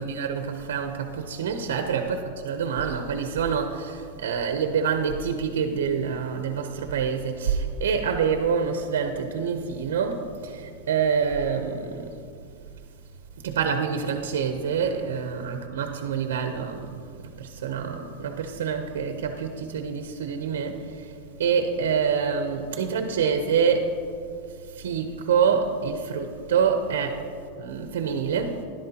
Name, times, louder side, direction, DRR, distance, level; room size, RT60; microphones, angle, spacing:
voice 1, 0.0-12.1 13.4-17.0 17.2-21.1 21.4-23.9 24.7-27.2 27.6-28.6, right 6 dB, 90° right, 6 dB, 0.7 m, -26 dB
12.5 x 11.5 x 2.9 m, 2.3 s
supercardioid pair, 150°, 0 cm